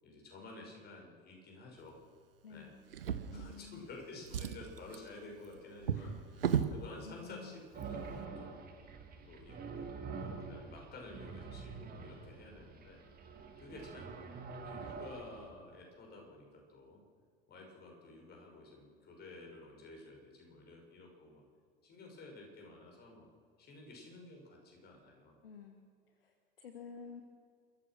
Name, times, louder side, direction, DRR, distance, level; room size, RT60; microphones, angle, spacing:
voice 1, 0.0-2.0 2.5-2.7 3.3-8.7 9.2-13.0 13.6-14.2 14.6-17.0 17.5-21.5 21.8-23.3 23.6-25.4, left 2 dB, 35° left, 0 dB, 6.3 m, -52 dB
voice 2, 2.4-2.8 3.3-3.9 6.0-6.2 6.6-7.6 25.4-25.9 26.2-27.2, left 6 dB, 70° left, 6 dB, 1.5 m, -51 dB
Drawer open or close, 2.9-3.9 4.2-6.8 7.7-7.8 8.2-8.3, right 8 dB, 75° right, 1.1 m, -36 dB
sound 1, 7.7-15.5, right 5 dB, 30° right, 3.4 m, -46 dB
29.5 x 14.5 x 6.3 m, 2.1 s
figure-of-eight pair, 70°, 29 cm